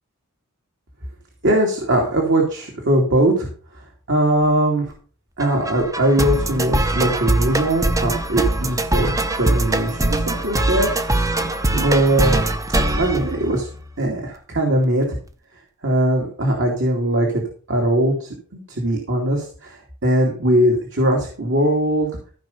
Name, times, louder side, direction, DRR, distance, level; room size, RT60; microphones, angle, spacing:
voice 1, 1.4-3.5 3.7-4.9 5.4-10.9 11.2-11.4 11.7-12.4 13.0-13.7 14.0-15.2 15.8-22.1, right 1 dB, 55° right, 0 dB, 2.7 m, -20 dB
sound 1, 5.4-14.0, right 1 dB, 15° right, 0.8 m, -22 dB
15.0 x 5.3 x 5.7 m, 0.39 s
head